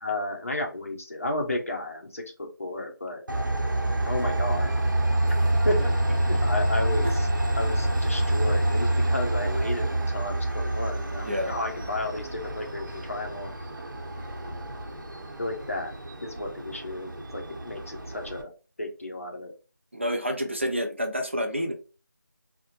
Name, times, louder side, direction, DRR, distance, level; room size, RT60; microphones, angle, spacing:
voice 1, 0.0-3.2 4.1-4.7 5.6-5.9 6.2-7.3 7.6-13.5 15.4-15.9 16.2-18.5 18.8-19.5, left 2 dB, 45° left, 2 dB, 0.7 m, -32 dB
Train, 3.3-18.4, right 1 dB, 75° right, 0.8 m, -27 dB
voice 2, 11.2-11.6 19.9-21.7, equal, 35° right, 5 dB, 0.4 m, -28 dB
2.7 x 2.1 x 2.8 m, 0.34 s
figure-of-eight pair, 175°, 11 cm